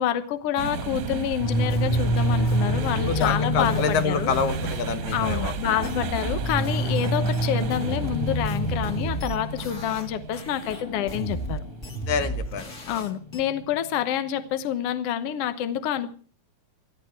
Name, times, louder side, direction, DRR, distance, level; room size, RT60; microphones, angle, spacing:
voice 1, 0.0-4.3 5.1-11.6 12.9-16.1, left 10 dB, 85° left, 11 dB, 1.3 m, -28 dB
sound 1, 0.6-12.6, right 7 dB, 65° right, 1.9 m, -35 dB
sound 2, 1.4-14.2, equal, 50° left, 1.9 m, -29 dB
sound 3, 1.7-7.1 7.3-10.1 10.3-13.4, right 2 dB, 30° left, 1.6 m, -34 dB
voice 2, 3.1-5.5 12.1-13.0, left 6 dB, 65° left, 9 dB, 3.0 m, -27 dB
19.0 x 13.5 x 4.6 m, 0.40 s
omnidirectional pair, 4.4 m